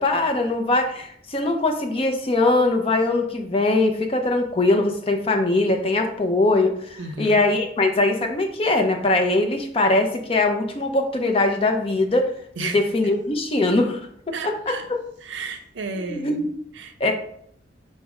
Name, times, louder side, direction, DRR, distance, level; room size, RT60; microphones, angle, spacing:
voice 1, 0.0-12.3 12.6-14.0 14.3-15.0 16.1-16.5 17.0-17.1, left 2 dB, 30° left, 0.5 m, -21 dB
voice 2, 7.0-7.4 12.6-13.1 14.3-14.9 15.2-17.1, right 3 dB, 70° right, 0.5 m, -34 dB
4.9 x 2.1 x 4.7 m
head